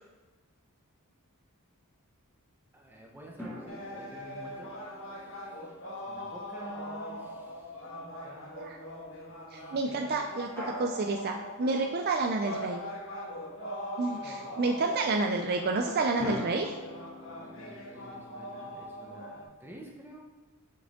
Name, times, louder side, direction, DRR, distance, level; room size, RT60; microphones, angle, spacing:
voice 1, 2.7-4.7 5.0-5.8 6.0-7.8 8.2-9.1 9.5-10.3 14.2-14.5 17.3-20.3, right 1 dB, 10° right, -1 dB, 1.1 m, -50 dB
sound 1, 3.4-6.7 10.6-12.6 16.2-19.3, equal, 10° left, 2.0 m, -44 dB
sound 2, 3.7-19.5, equal, 60° left, 1.5 m, -42 dB
voice 2, 9.5-12.8 14.0-16.8, right 3 dB, 45° right, 3 dB, 0.4 m, -30 dB
6.0 x 6.0 x 3.7 m, 1.2 s
head